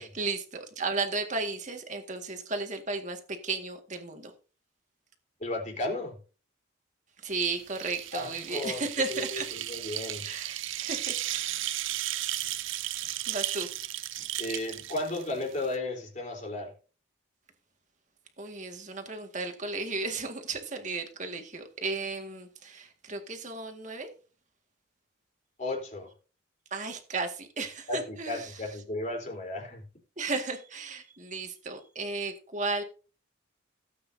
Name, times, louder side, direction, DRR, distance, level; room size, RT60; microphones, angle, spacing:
voice 1, 0.0-4.3 7.2-9.5 10.2-11.7 13.3-13.7 18.4-24.1 26.7-28.7 30.2-32.8, right 3 dB, 35° right, 1.9 m, -34 dB
voice 2, 5.4-6.1 8.1-8.9 9.3-10.3 14.4-16.7 25.6-26.1 27.9-29.8, left 2 dB, 35° left, 3.8 m, -34 dB
sound 1, 7.3-15.8, right 14 dB, 70° right, 0.6 m, -35 dB
17.0 x 8.6 x 2.7 m
head